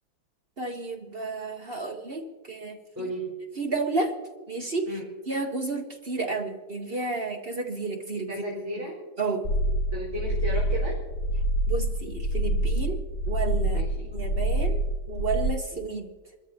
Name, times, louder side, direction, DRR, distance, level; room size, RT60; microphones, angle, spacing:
voice 1, 0.6-3.1 3.6-4.1 4.5-5.0 5.3-8.3 9.2-9.5 11.7-13.0 13.3-13.8 14.1-14.8 15.1-16.1, right 3 dB, 45° right, 3 dB, 0.7 m, -31 dB
voice 2, 3.0-3.3 4.8-5.1 8.3-9.0 9.9-11.0 13.7-14.1, equal, 5° right, -6 dB, 4.1 m, -34 dB
sound 1, 9.4-15.5, right 1 dB, 45° left, 0.9 m, -26 dB
28.5 x 14.0 x 2.8 m, 1.4 s
omnidirectional pair, 2.2 m